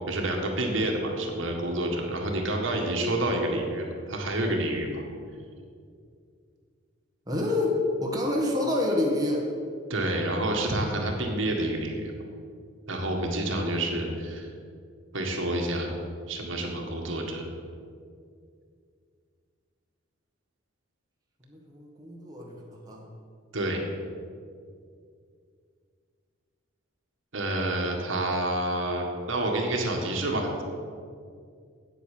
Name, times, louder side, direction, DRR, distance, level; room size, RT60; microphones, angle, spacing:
voice 1, 0.1-5.0 9.9-12.1 12.9-14.5 15.1-15.9 16.3-17.4 23.5-23.8 27.3-30.6, right 1 dB, 60° right, 1 dB, 1.8 m, -28 dB
voice 2, 7.3-9.5 21.5-23.1, left 2 dB, 15° right, -2 dB, 1.4 m, -28 dB
9.3 x 8.4 x 7.5 m, 2.2 s
head